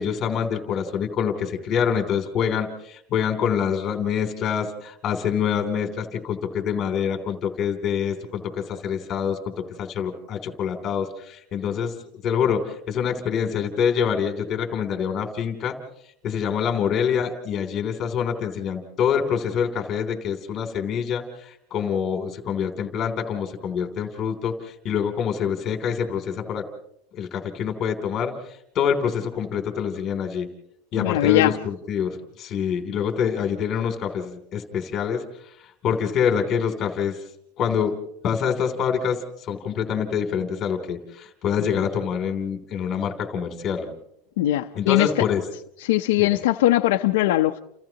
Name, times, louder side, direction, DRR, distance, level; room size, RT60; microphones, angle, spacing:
voice 1, 0.0-9.4 9.8-11.9 12.2-15.8 16.2-26.6 27.1-28.3 28.7-30.5 30.9-35.2 35.8-37.2 37.6-37.9 38.2-39.2 39.5-43.9 44.7-45.4 46.2-46.4, left 7 dB, 25° left, 3.2 m, -26 dB
voice 2, 31.0-31.6 41.6-41.8 44.4-45.2 45.8-47.6, left 15 dB, 80° left, 0.8 m, -20 dB
29.5 x 29.5 x 3.0 m
supercardioid pair, 175°, 0 cm